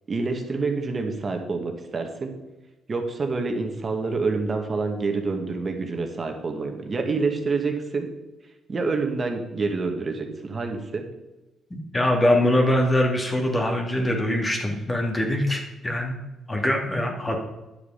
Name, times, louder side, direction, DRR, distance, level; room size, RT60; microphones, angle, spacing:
voice 1, 0.1-2.3 2.9-8.1 8.7-11.1, right 4 dB, 35° right, 4 dB, 1.8 m, -27 dB
voice 2, 11.7-16.2 16.5-17.3, left 1 dB, 20° left, 1 dB, 2.3 m, -23 dB
10.5 x 7.0 x 5.7 m, 1.0 s
cardioid pair, 90°, 0 cm